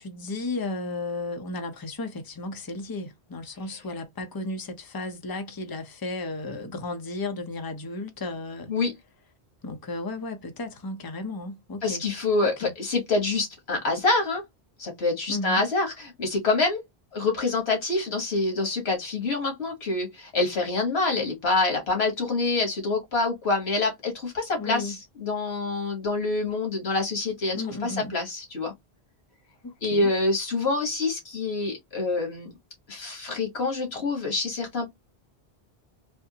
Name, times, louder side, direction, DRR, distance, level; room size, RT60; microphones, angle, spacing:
voice 1, 0.0-8.7 9.6-12.0 12.4-12.7 15.3-15.7 24.6-24.9 27.5-28.1 29.6-30.1, left 3 dB, 25° left, 0.6 m, -34 dB
voice 2, 11.8-14.4 14.8-16.8 17.1-28.7 29.8-32.5 32.9-34.9, left 3 dB, 85° left, 1.7 m, -26 dB
3.5 x 2.6 x 2.8 m
omnidirectional pair, 1.0 m